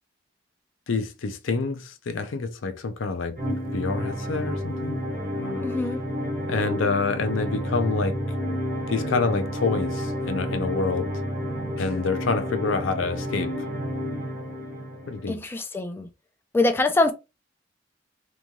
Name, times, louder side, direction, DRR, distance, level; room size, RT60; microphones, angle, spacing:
voice 1, 0.9-3.4 3.7-5.0 5.3-5.7 6.5-8.2 8.9-11.1 11.8-13.7 15.1-15.4, left 4 dB, 90° left, 0.5 m, -27 dB
sound 1, 3.4-15.3, equal, 45° right, 1.0 m, -30 dB
voice 2, 5.6-6.0 15.3-16.1 16.5-17.1, left 2 dB, 10° left, 0.3 m, -23 dB
3.1 x 2.6 x 2.2 m
head